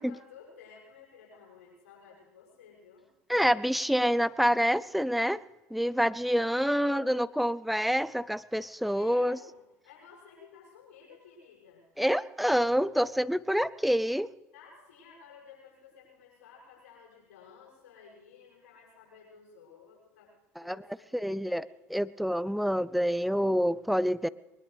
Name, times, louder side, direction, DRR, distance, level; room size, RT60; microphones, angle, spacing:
voice 1, 0.0-3.1 6.6-7.2 8.9-11.9 14.5-21.8, left 6 dB, 75° left, -4 dB, 6.6 m, -54 dB
voice 2, 3.3-5.4 5.7-9.4 12.0-14.3 20.6-20.8 21.1-21.6 21.9-24.3, equal, ahead, 18 dB, 0.5 m, -27 dB
21.5 x 20.0 x 3.4 m, 1.1 s
hypercardioid pair, 70°, 8 cm